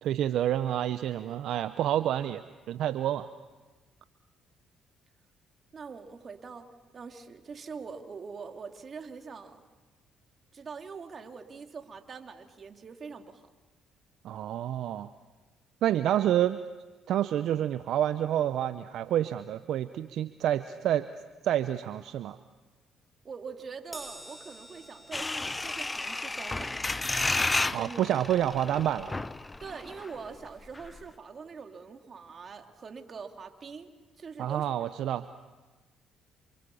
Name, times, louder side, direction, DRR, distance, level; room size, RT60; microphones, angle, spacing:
voice 1, 0.0-3.3 14.2-15.1 15.8-16.6 17.1-21.1 21.4-22.4 27.7-29.2 34.4-35.3, right 11 dB, 70° right, 11 dB, 0.8 m, -28 dB
voice 2, 5.7-6.7 6.9-9.6 10.5-13.4 23.2-26.8 27.7-28.0 29.6-34.9, right 5 dB, 45° right, 4 dB, 3.0 m, -43 dB
Crash cymbal, 23.9-30.5 30.9-31.1 32.1-32.2, right 1 dB, 10° right, 7.2 m, -52 dB
sound 1, 25.1-30.1 30.5-30.6 30.8-31.0, left 2 dB, 20° left, 0.9 m, -32 dB
28.0 x 27.0 x 7.1 m, 1.3 s
supercardioid pair, 60°, 0 cm